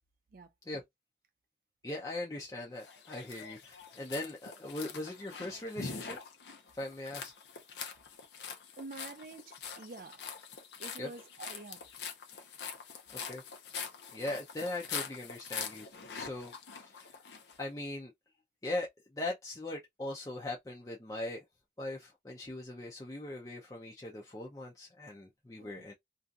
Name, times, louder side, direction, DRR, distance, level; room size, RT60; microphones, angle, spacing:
voice 1, 1.8-6.2 6.7-7.3 11.0-11.1 13.1-13.4 14.1-15.9 16.1-17.2 17.6-18.1 18.6-21.4 21.8-25.9, left 2 dB, 20° left, 0.5 m, -40 dB
sound 1, 2.8-17.6, left 6 dB, 70° left, 0.6 m, -44 dB
voice 2, 8.8-10.2 10.8-11.8 25.6-25.8, right 3 dB, 50° right, 0.4 m, -47 dB
2.6 x 2.4 x 2.4 m
head